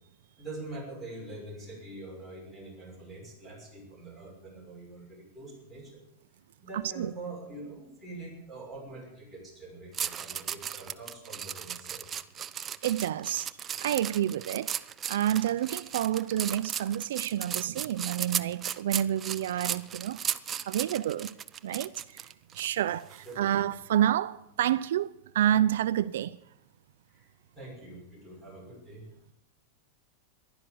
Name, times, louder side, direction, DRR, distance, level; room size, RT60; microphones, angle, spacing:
voice 1, 0.4-6.0 6.6-12.1 21.2-21.4 23.2-24.1 27.1-29.1, right 2 dB, ahead, 6.0 m, -44 dB
voice 2, 6.7-7.1 12.8-13.5 13.8-14.7 15.0-20.2 20.7-21.3 21.6-22.3 22.5-26.4, right 11 dB, 80° right, 0.6 m, -29 dB
sound 1, 9.9-22.7 23.1-23.3, right 8 dB, 20° right, 0.5 m, -36 dB
15.5 x 11.5 x 7.9 m
supercardioid pair, 165°, 0 cm